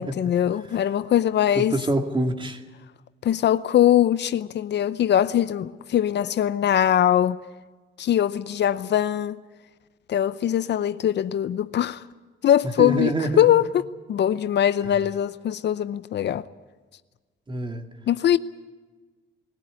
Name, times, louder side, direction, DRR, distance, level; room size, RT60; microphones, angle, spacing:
voice 1, 0.0-1.8 3.2-7.4 8.0-9.4 10.1-12.0 12.4-13.8 14.1-16.4 18.1-18.4, left 10 dB, 60° left, 0.7 m, -22 dB
voice 2, 1.6-2.6 12.8-13.6 17.5-17.8, right 1 dB, 25° right, 2.4 m, -25 dB
21.0 x 16.0 x 9.8 m
cardioid pair, 90°, 20 cm